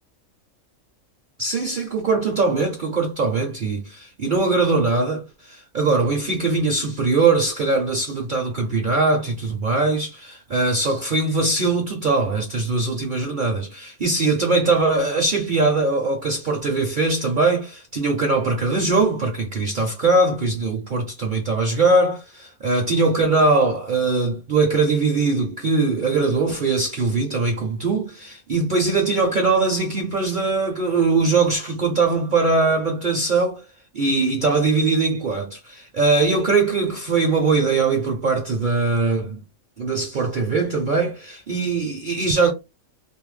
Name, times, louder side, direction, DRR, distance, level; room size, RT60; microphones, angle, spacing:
voice 1, 1.4-33.6 33.9-39.4 39.8-42.5, right 3 dB, 60° right, 0.5 m, -21 dB
2.5 x 2.0 x 3.1 m
omnidirectional pair, 1.5 m